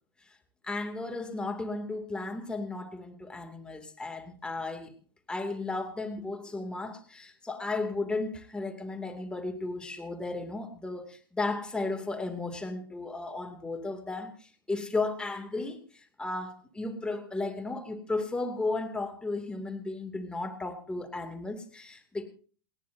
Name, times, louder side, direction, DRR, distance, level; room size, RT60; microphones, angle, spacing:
voice 1, 0.6-4.9 5.3-22.2, left 3 dB, 10° left, 4 dB, 2.4 m, -34 dB
29.0 x 10.0 x 2.7 m, 0.42 s
hypercardioid pair, 110°, 12 cm